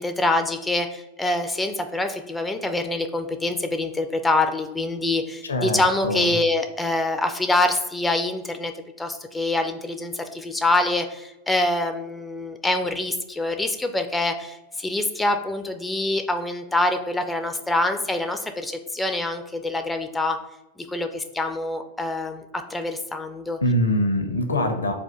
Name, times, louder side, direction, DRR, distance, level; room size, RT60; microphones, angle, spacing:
voice 1, 0.0-8.7 9.0-20.4 20.8-23.6, left 2 dB, 10° left, 6 dB, 0.3 m, -25 dB
voice 2, 5.4-6.3 23.6-24.9, left 1 dB, 75° left, 6 dB, 0.5 m, -23 dB
3.5 x 2.3 x 4.2 m, 0.96 s
figure-of-eight pair, 90°, 0 cm